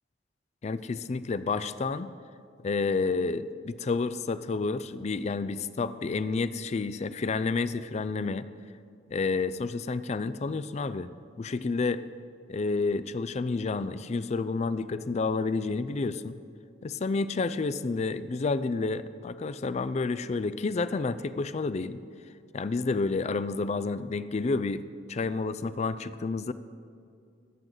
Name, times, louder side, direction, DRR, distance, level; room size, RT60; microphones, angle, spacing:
voice 1, 0.6-2.1 2.6-8.4 9.1-11.1 11.4-12.1 12.5-16.4 16.8-22.0 22.5-26.5, left 4 dB, 35° left, 14 dB, 0.4 m, -30 dB
22.5 x 7.8 x 3.9 m, 2.4 s
head